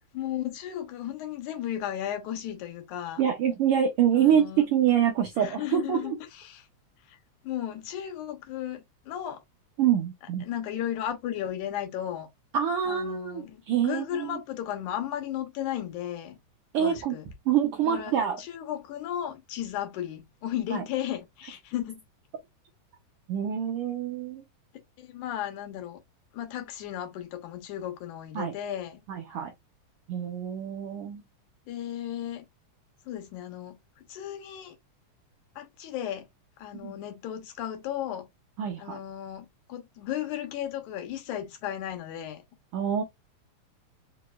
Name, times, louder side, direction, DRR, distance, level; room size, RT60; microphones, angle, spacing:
voice 1, 0.1-3.2 4.1-4.6 5.4-6.6 7.1-7.2 7.4-9.4 10.4-12.3 12.9-16.4 16.8-17.3 17.8-18.1 18.4-22.0 25.0-26.0 26.3-29.0 31.7-32.4 33.1-33.8 34.1-34.8 35.6-36.3 36.6-38.3 38.8-42.4, left 11 dB, 90° left, 2.4 m, -35 dB
voice 2, 3.2-4.4 4.7-6.0 9.8-10.4 12.5-14.4 16.7-17.2 17.5-18.4 20.7-20.8 23.3-24.4 28.3-28.5 29.1-29.5 30.1-31.2 36.8-36.9 38.6-39.0 42.7-43.0, right 9 dB, 75° right, 1.3 m, -26 dB
5.2 x 3.0 x 2.2 m
omnidirectional pair, 3.4 m